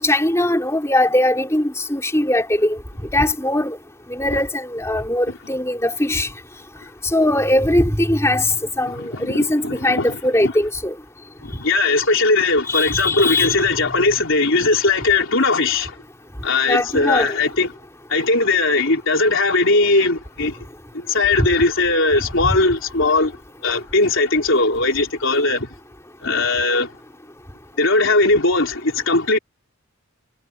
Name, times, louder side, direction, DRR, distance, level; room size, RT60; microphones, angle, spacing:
voice 1, 0.0-2.8 3.1-3.8 4.1-6.3 7.1-10.9 12.7-13.6 16.7-17.3 21.4-21.5 22.4-22.6, left 1 dB, 15° left, 3.9 m, -20 dB
voice 2, 8.9-10.5 11.4-16.0 16.4-17.7 18.1-20.6 20.9-25.7 26.2-26.9 27.8-29.4, left 3 dB, 60° left, 4.2 m, -19 dB
head